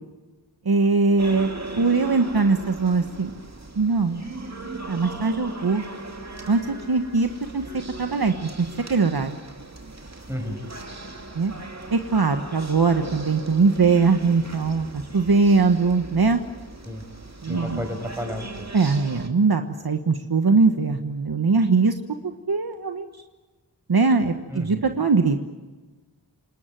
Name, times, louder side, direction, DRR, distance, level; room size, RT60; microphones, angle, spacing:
voice 1, 0.6-1.5 1.8-3.3 3.8-4.2 4.9-5.8 6.5-9.4 11.3-11.5 11.9-16.4 17.4-17.8 18.7-21.9 22.2-23.1 23.9-25.4, right 4 dB, 55° right, 6 dB, 1.4 m, -21 dB
sound 1, 1.2-19.3, right 2 dB, 35° right, 2.6 m, -38 dB
voice 2, 10.3-10.6 16.9-17.0 17.5-18.7 24.5-24.8, left 1 dB, 5° right, 5 dB, 5.9 m, -32 dB
28.0 x 20.0 x 9.2 m, 1.3 s
wide cardioid pair, 55°, 44 cm